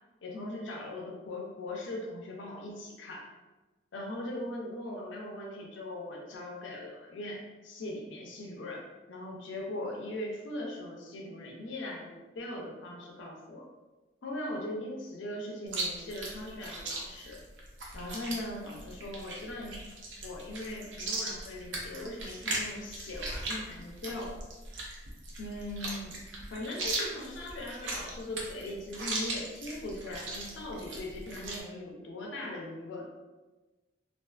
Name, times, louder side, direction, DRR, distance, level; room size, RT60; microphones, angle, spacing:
voice 1, 0.2-3.2 3.9-8.8 9.1-13.7 14.2-17.4 17.9-19.9 20.2-24.4 25.4-26.1 26.5-33.1, left 1 dB, 90° left, -1 dB, 0.5 m, -40 dB
Chewing mastication, 15.7-31.6, right 2 dB, 80° right, 0.5 m, -38 dB
2.4 x 2.3 x 2.3 m, 1.2 s
head